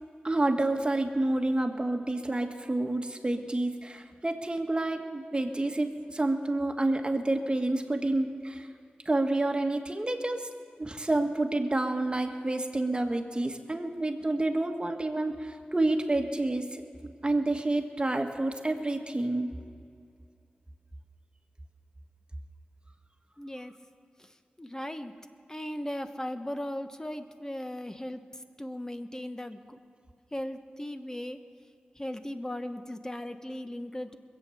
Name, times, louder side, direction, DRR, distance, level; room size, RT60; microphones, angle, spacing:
voice 1, 0.2-8.7 9.0-10.5 10.8-16.8 17.2-19.5, right 2 dB, 30° right, 4 dB, 1.5 m, -29 dB
voice 2, 23.4-23.7 24.6-25.1 25.5-28.2 28.6-29.8 30.3-31.4 32.0-34.2, left 1 dB, 15° left, 8 dB, 1.1 m, -37 dB
21.5 x 8.5 x 7.0 m, 2.4 s
cardioid pair, 40°, 3 cm